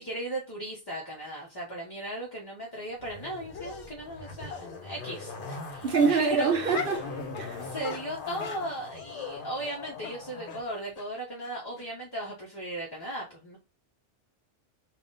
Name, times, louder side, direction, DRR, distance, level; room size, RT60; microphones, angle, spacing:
voice 1, 0.0-6.5 7.6-13.6, right 1 dB, 25° left, 0.7 m, -37 dB
Zipper (clothing), 3.0-10.6 10.9-11.0, left 4 dB, 50° left, 1.0 m, -41 dB
Dog, 3.5-3.9 4.5-4.6 5.4-5.5 5.9-7.0 7.3-7.5 7.8-9.3 9.6-9.8 10.0-10.1 10.5-10.6 11.0-11.1 11.4-11.5 11.8-11.9, left 6 dB, 80° left, 1.0 m, -38 dB
voice 2, 5.8-7.1 7.3-7.6, right 5 dB, 60° right, 0.7 m, -25 dB
3.6 x 2.4 x 3.9 m
omnidirectional pair, 1.2 m